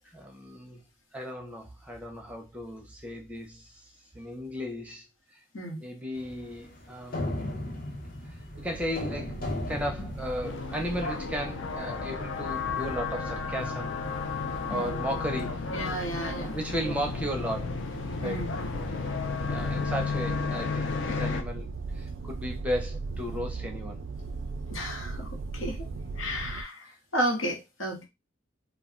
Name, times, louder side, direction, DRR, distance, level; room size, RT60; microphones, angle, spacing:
voice 1, 0.1-0.8 1.1-5.1 5.8-7.4 8.3-9.4 9.7-13.9 14.7-15.6 16.5-17.7 18.2-18.4 19.4-24.0 26.8-27.0, equal, 5° right, 0.5 m, -35 dB
sound 1, 6.2-11.0, left 1 dB, 45° left, 0.8 m, -36 dB
sound 2, 8.5-26.6, right 3 dB, 60° right, 0.3 m, -39 dB
sound 3, 10.4-21.4, left 5 dB, 65° left, 0.5 m, -33 dB
voice 2, 15.7-16.6 16.8-16.9 18.2-18.5 24.7-25.8 26.2-28.0, equal, 85° left, 1.1 m, -33 dB
2.3 x 2.2 x 3.6 m
head